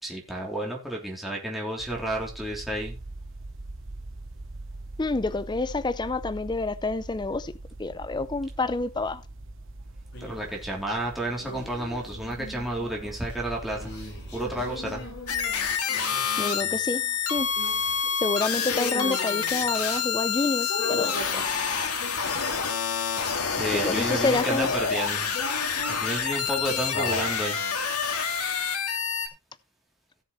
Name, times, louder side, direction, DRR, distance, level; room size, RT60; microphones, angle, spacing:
voice 1, 0.0-3.0 10.2-13.9 14.3-15.0 23.6-25.3 25.9-27.6, right 1 dB, ahead, 3.1 m, -31 dB
sound 1, 1.8-15.7, right 2 dB, 60° right, 1.0 m, -42 dB
voice 2, 5.0-7.5 7.8-9.2 16.4-17.0 17.3-17.5 18.2-21.5 23.7-24.7, left 3 dB, 20° left, 0.5 m, -28 dB
sound 2, 10.1-10.6 10.9-22.9 23.2-24.2 25.1-27.4, left 2 dB, 50° left, 6.9 m, -39 dB
sound 3, 15.3-29.3, left 6 dB, 85° left, 2.1 m, -28 dB
16.5 x 7.1 x 3.1 m
head